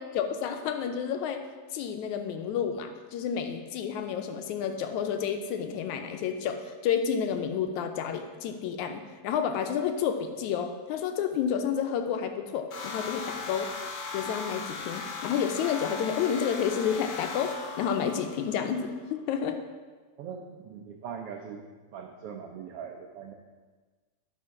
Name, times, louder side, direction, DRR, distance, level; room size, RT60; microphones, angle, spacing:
voice 1, 0.0-1.5 1.7-13.7 14.1-19.6, left 7 dB, 80° left, 6 dB, 2.0 m, -30 dB
sound 1, 12.7-18.9, left 4 dB, 55° left, 2.1 m, -38 dB
voice 2, 20.2-21.7 21.9-23.3, right 7 dB, 85° right, 2 dB, 1.3 m, -41 dB
11.0 x 5.0 x 5.8 m, 1.4 s
omnidirectional pair, 3.5 m